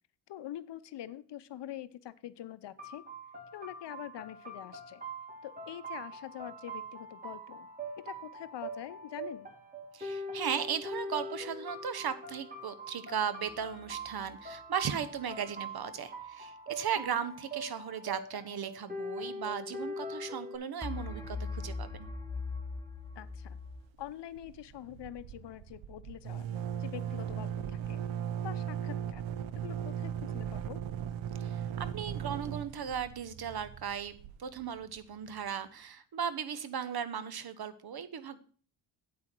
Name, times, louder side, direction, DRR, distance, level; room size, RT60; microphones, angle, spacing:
voice 1, 0.3-3.0 3.5-5.0 5.4-7.7 8.0-9.5 17.0-17.1 23.2-23.6 24.0-26.5 26.8-28.0 28.4-29.2 29.6-30.8, left 12 dB, 60° left, 14 dB, 0.8 m, -45 dB
sound 1, 2.8-20.6, right 1 dB, 20° right, 3.3 m, -43 dB
voice 2, 9.9-22.1 31.4-38.4, right 8 dB, 50° right, 14 dB, 1.1 m, -37 dB
sound 2, 13.4-14.3 20.8-23.8, left 4 dB, 5° left, 1.5 m, -40 dB
sound 3, 23.2-23.7 24.0-24.1 24.4-35.0, right 9 dB, 70° right, 0.8 m, -38 dB
8.6 x 8.4 x 4.5 m, 0.41 s
cardioid pair, 70°, 48 cm